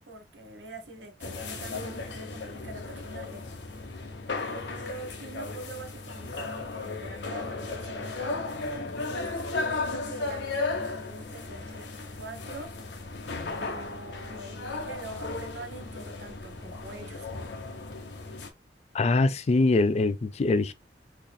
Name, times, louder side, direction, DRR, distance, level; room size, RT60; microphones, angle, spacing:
voice 1, 0.1-3.4 4.4-9.3 9.9-11.9 12.2-12.7 13.5-17.3, right 2 dB, 90° right, 1.3 m, -44 dB
sound 1, 1.2-18.5, left 3 dB, 85° left, 0.9 m, -35 dB
voice 2, 18.9-20.7, left 3 dB, 40° left, 0.4 m, -23 dB
4.1 x 3.7 x 2.2 m
head